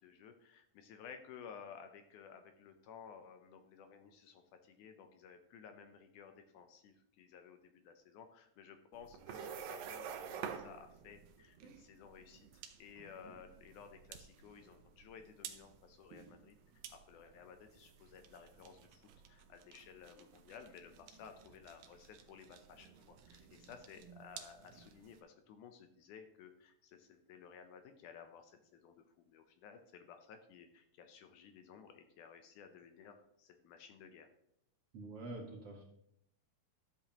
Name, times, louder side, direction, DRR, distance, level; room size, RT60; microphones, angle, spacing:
voice 1, 0.0-34.3, left 7 dB, 75° left, 7 dB, 2.1 m, -56 dB
sound 1, 8.9-25.2, right 8 dB, 75° right, 1.9 m, -51 dB
voice 2, 34.9-35.8, right 2 dB, 55° right, 0 dB, 2.2 m, -46 dB
12.0 x 7.5 x 2.9 m, 0.73 s
omnidirectional pair, 3.8 m